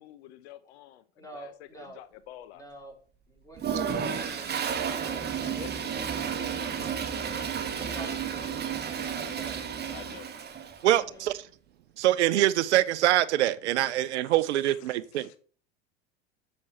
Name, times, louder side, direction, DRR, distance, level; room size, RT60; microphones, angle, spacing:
voice 1, 0.0-2.6 5.6-5.7 9.9-10.3 11.0-11.3 14.6-15.4, left 13 dB, 75° left, 0.7 m, -48 dB
voice 2, 1.2-2.0 2.5-3.0 3.3-5.3 5.6-6.7 7.7-8.5 8.8-9.6 10.8-11.3, right 1 dB, 10° left, 3.6 m, -47 dB
Toilet flush, 3.6-10.8, right 7 dB, 30° right, 1.4 m, -32 dB
voice 3, 10.8-11.3 12.0-15.3, right 14 dB, 85° right, 0.6 m, -24 dB
7.4 x 6.3 x 4.2 m
hypercardioid pair, 90°, 33 cm